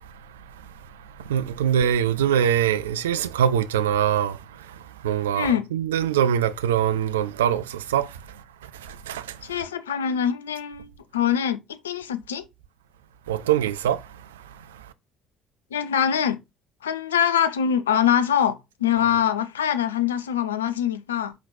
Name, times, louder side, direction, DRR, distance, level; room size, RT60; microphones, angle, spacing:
voice 1, 1.2-4.8 5.0-8.2 8.7-9.4 13.3-14.0, right 9 dB, 75° right, 0.3 m, -23 dB
voice 2, 5.4-5.7 9.4-12.4 15.7-16.4 16.8-21.3, left 9 dB, 80° left, 0.5 m, -24 dB
5.2 x 4.0 x 2.3 m
figure-of-eight pair, 50°, 0 cm